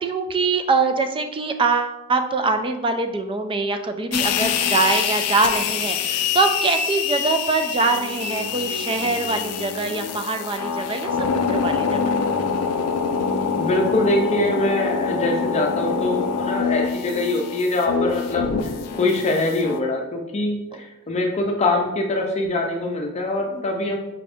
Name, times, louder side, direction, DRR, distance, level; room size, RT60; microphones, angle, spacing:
voice 1, 0.0-12.1 23.5-23.6, right 3 dB, 25° right, 7 dB, 0.3 m, -23 dB
sound 1, 4.1-19.8, left 6 dB, 85° left, 0.4 m, -25 dB
voice 2, 13.6-18.7 19.0-24.0, left 2 dB, 30° left, 1 dB, 0.5 m, -23 dB
5.6 x 2.6 x 3.4 m, 0.98 s
head